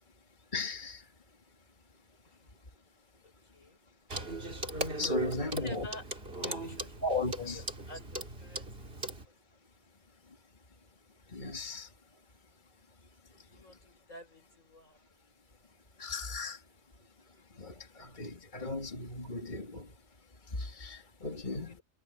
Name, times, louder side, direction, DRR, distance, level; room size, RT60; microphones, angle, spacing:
voice 1, 0.5-1.0 5.0-5.9 7.0-7.6 11.3-11.9 16.0-16.6 17.6-19.9 20.5-21.7, left 2 dB, 30° left, 2.6 m, -36 dB
voice 2, 2.2-2.6 3.2-3.8 5.5-7.0 7.5-9.0 13.4-15.2 21.7-21.8, left 2 dB, 55° left, 6.8 m, -50 dB
Clock, 4.1-9.3, right 1 dB, 40° right, 2.9 m, -39 dB
omnidirectional pair, 1.6 m